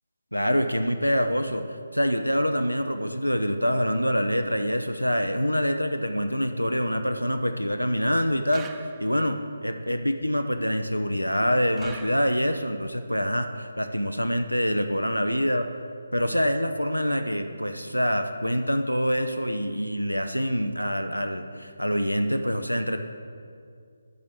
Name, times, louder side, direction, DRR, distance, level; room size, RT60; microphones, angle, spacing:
voice 1, 0.3-1.6 1.9-8.7 9.0-15.7 16.1-23.0, equal, 90° left, 7 dB, 0.7 m, -25 dB
sound 1, 8.5-9.4 11.8-12.7, right 7 dB, 10° right, 0.4 m, -45 dB
12.0 x 4.1 x 8.0 m, 2.3 s
figure-of-eight pair, 150°, 0 cm